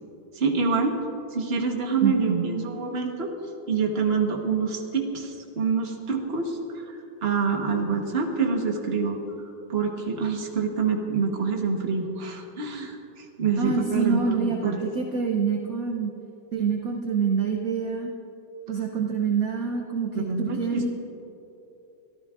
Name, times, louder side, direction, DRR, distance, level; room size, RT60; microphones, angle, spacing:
voice 1, 0.3-1.0 1.3-3.3 3.7-9.2 9.7-14.8 20.1-20.9, right 5 dB, 40° right, 2 dB, 1.3 m, -26 dB
voice 2, 2.0-2.5 13.6-16.1 16.5-18.1 18.7-20.9, right 5 dB, 60° right, 1 dB, 1.2 m, -26 dB
24.0 x 14.0 x 2.5 m, 2.9 s
omnidirectional pair, 2.0 m